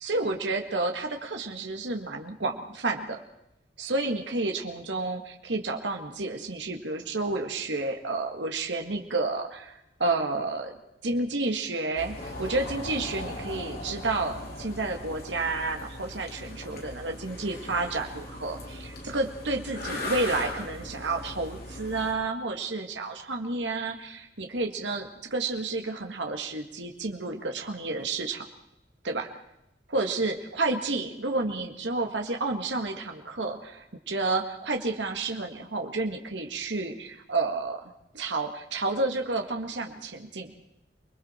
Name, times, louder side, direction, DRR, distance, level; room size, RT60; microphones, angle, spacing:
voice 1, 0.0-3.2 3.8-10.7 11.0-28.5 29.0-29.3 29.9-37.8 38.1-40.5, right 3 dB, 80° right, 3 dB, 1.8 m, -30 dB
sound 1, 12.0-22.1, left 1 dB, 60° left, 4.4 m, -39 dB
28.5 x 21.0 x 4.4 m, 0.83 s
head